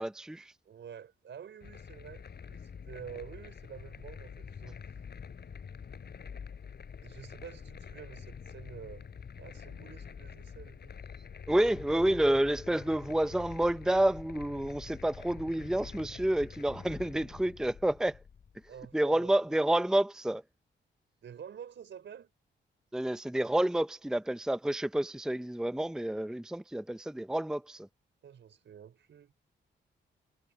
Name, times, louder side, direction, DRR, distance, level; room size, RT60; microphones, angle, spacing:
voice 1, 0.0-0.5 11.5-18.2 18.9-20.4 22.9-27.9, right 1 dB, 5° right, 0.6 m, -29 dB
voice 2, 0.6-4.8 7.0-9.1 9.4-10.9 18.7-19.3 21.2-22.3 28.2-29.3, right 8 dB, 75° right, 5.1 m, -48 dB
sound 1, 1.6-18.9, left 6 dB, 60° left, 4.4 m, -46 dB
cardioid pair, 80°, 19 cm